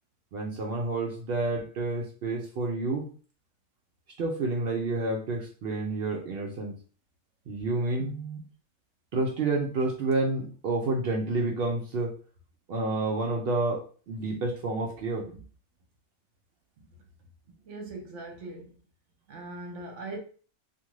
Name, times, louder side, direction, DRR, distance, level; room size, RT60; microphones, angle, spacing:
voice 1, 0.3-3.1 4.2-6.8 7.5-8.4 9.1-12.1 12.7-15.4, right 2 dB, 80° right, 0 dB, 0.5 m, -29 dB
voice 2, 17.6-18.7 19.3-20.2, right 2 dB, 60° right, 3 dB, 0.9 m, -40 dB
2.5 x 2.5 x 3.0 m, 0.40 s
omnidirectional pair, 1.6 m